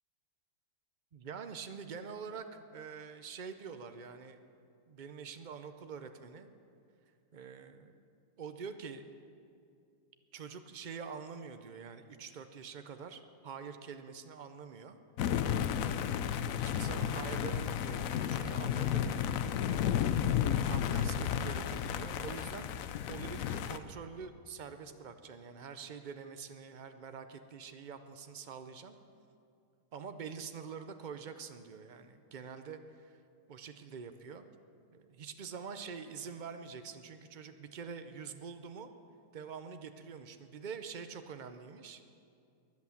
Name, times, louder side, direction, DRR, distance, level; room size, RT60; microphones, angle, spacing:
voice 1, 1.1-4.4 4.9-6.5 7.3-7.9 8.4-9.0 10.3-15.0 16.0-19.6 20.7-29.0 29.9-33.2 33.5-34.5 34.9-38.9 39.3-42.0, right 6 dB, 90° right, 8 dB, 0.4 m, -46 dB
sound 1, 15.2-23.8, left 9 dB, 65° left, 0.9 m, -32 dB
22.5 x 8.4 x 7.1 m, 2.5 s
omnidirectional pair, 1.8 m